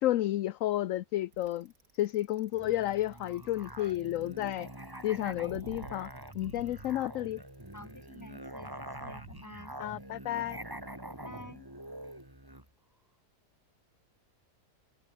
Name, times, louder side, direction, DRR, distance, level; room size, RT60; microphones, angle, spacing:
voice 1, 0.0-4.7 5.0-6.1 6.3-7.4 9.8-10.6, left 14 dB, 65° left, 0.9 m, -31 dB
Bicycle, 1.3-9.4, right 3 dB, 90° right, 4.4 m, -51 dB
Musical instrument, 2.5-12.7, right 1 dB, 15° right, 3.6 m, -45 dB
voice 2, 7.7-9.8 11.2-11.7, left 1 dB, 10° left, 3.7 m, -50 dB
omnidirectional pair, 1.6 m